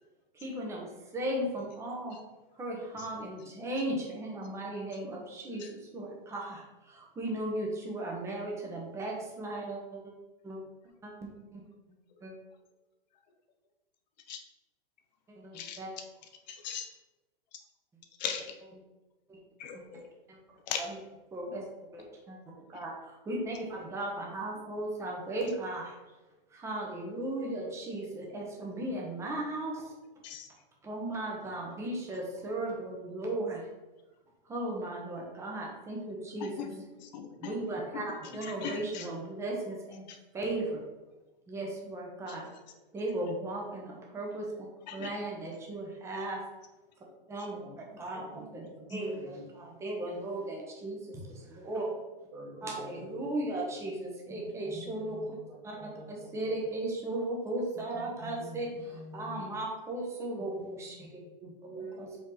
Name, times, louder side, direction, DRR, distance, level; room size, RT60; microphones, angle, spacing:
voice 1, 0.3-2.2 2.6-10.1 10.4-10.6 11.0-11.6 12.2-12.3 15.3-15.9 19.3-19.4 19.7-19.9 20.3-20.4 21.3-21.6 21.9-25.9 26.5-29.8 30.8-33.6 34.4-36.5 37.4-38.0 38.3-40.1 40.3-40.8 41.5-42.5 42.9-44.7 44.9-46.4 47.3-47.6 47.9-48.6 48.9-51.9 52.6-55.4 55.6-55.8 56.1-61.1 61.7-62.1, right 1 dB, 10° right, -2 dB, 1.0 m, -36 dB
voice 2, 5.6-5.9 12.1-12.3 14.3-14.4 15.5-15.8 16.5-16.9 17.5-17.6 18.2-18.5 19.6-20.1 20.7-20.9 22.7-22.8 30.2-30.5 31.8-31.9 36.4-37.5 37.9-39.1 40.1-40.2 42.3-42.6 44.9-45.1, left 7 dB, 50° left, 5 dB, 0.8 m, -40 dB
voice 3, 37.3-37.9 38.2-38.4 47.6-47.8 48.1-48.5 48.8-49.5 52.3-53.4 53.7-53.8 54.6-56.6 58.2-59.4 61.1-62.2, right 1 dB, 45° right, -9 dB, 2.0 m, -48 dB
5.2 x 4.6 x 4.0 m, 1.1 s
hypercardioid pair, 145°, 29 cm